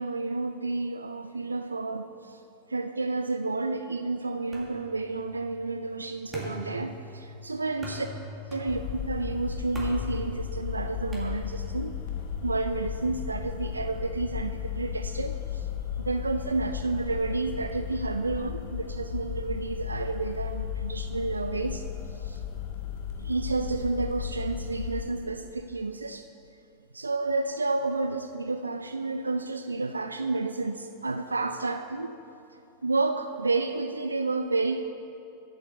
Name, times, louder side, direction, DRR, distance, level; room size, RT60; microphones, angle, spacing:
voice 1, 0.0-2.4 2.7-8.1 8.5-11.9 12.4-15.7 16.0-21.8 22.2-22.4 23.2-26.2 26.9-32.2 32.8-34.8, right 3 dB, 80° right, 8 dB, 0.3 m, -30 dB
sound 1, 4.5-11.9, equal, 15° right, 2.1 m, -43 dB
sound 2, 8.7-25.0, left 8 dB, 50° left, 0.8 m, -35 dB
8.2 x 7.2 x 6.7 m, 2.7 s
figure-of-eight pair, 90°, 0 cm